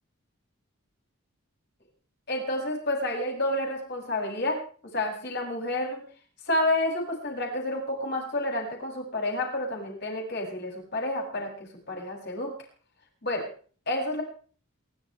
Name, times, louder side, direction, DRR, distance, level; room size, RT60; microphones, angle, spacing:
voice 1, 2.3-4.6 4.9-6.0 6.4-12.5 13.2-13.5 13.9-14.2, left 1 dB, 50° left, -1 dB, 7.5 m, -29 dB
28.0 x 13.0 x 3.4 m, 0.42 s
head